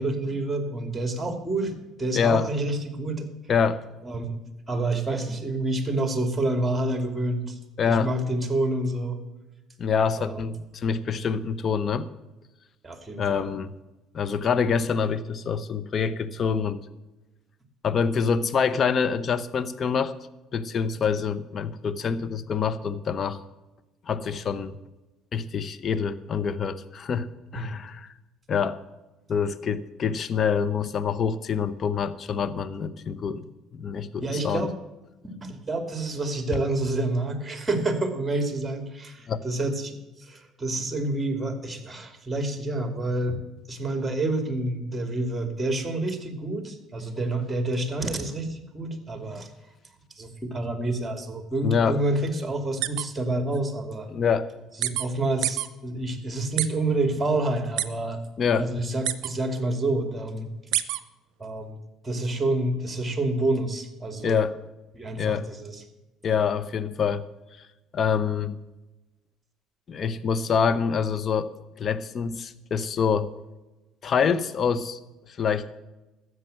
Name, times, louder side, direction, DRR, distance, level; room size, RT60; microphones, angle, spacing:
voice 1, 0.0-3.3 4.0-4.4 4.7-7.6 7.9-9.2 10.2-10.4 12.8-13.5 27.5-27.8 32.4-32.5 34.2-34.8 35.2-43.4 43.7-49.5 50.2-54.1 54.8-58.2 58.6-60.5 61.4-61.8 62.0-64.4 64.9-65.8, right 2 dB, 15° right, 7 dB, 2.6 m, -28 dB
voice 2, 2.1-2.5 3.5-3.8 7.8-8.1 9.8-12.1 13.2-13.7 14.1-16.8 17.8-20.1 20.5-23.4 24.1-24.8 25.3-28.1 28.5-28.8 29.3-33.4 33.7-34.7 39.3-39.4 51.6-52.0 54.1-54.4 58.4-58.7 64.2-64.6 65.2-65.5 66.2-67.2 67.9-68.5 69.9-71.5 71.8-73.3 74.0-75.0 75.3-75.7, left 6 dB, 45° left, 13 dB, 0.9 m, -26 dB
sound 1, 52.8-53.0 53.5-53.6 54.8-55.1 55.4-55.7 56.6-56.7 57.8-57.9 59.0-59.3 60.7-61.0, right 14 dB, 65° right, 0.7 m, -25 dB
13.0 x 8.1 x 7.6 m, 1.1 s
hypercardioid pair, 60°, 0 cm